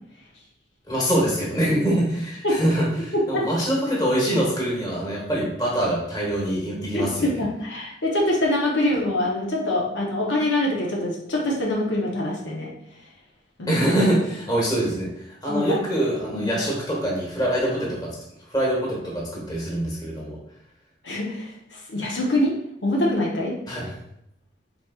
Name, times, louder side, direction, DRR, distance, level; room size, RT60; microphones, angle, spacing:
voice 1, 0.9-7.4 13.7-18.1 18.5-20.4 23.7-23.9, right 1 dB, 20° left, -4 dB, 1.2 m, -24 dB
voice 2, 3.1-3.4 6.9-12.7 13.6-13.8 15.5-15.8 16.3-16.5 21.0-21.5 21.9-22.5 22.8-23.5, left 1 dB, 75° left, -2 dB, 0.9 m, -24 dB
4.2 x 4.1 x 2.4 m, 0.78 s
head